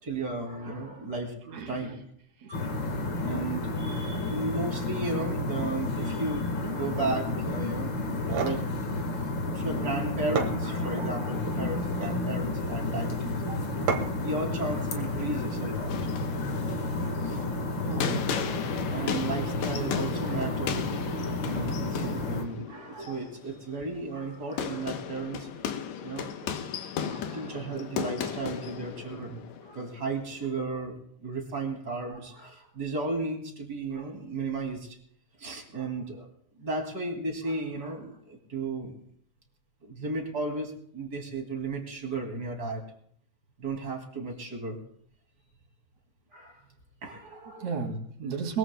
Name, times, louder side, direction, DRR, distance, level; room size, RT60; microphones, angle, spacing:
voice 1, 0.0-1.3 1.7-2.0 2.5-2.7 3.2-8.6 9.2-13.6 14.2-15.9 17.0-17.5 18.9-21.0 21.4-25.5 26.0-26.3 27.0-35.0 35.4-36.3 36.5-39.0 39.8-42.8 43.6-44.8 46.3-46.6 47.0-47.8, right 3 dB, 35° right, 1 dB, 2.7 m, -34 dB
voice 2, 1.5-1.8 2.4-2.5 4.2-4.3 17.8-18.3 47.6-48.6, right 5 dB, 65° right, 2 dB, 3.5 m, -33 dB
sound 1, 2.5-22.5, left 2 dB, 45° left, 2.0 m, -31 dB
sound 2, 8.1-8.6 9.9-10.0 10.4-11.1 11.8-12.3 13.9-14.3, right 5 dB, 85° right, 3.1 m, -31 dB
sound 3, 15.9-30.5, left 8 dB, 75° left, 2.2 m, -36 dB
22.0 x 21.5 x 2.2 m, 0.65 s
omnidirectional pair, 3.4 m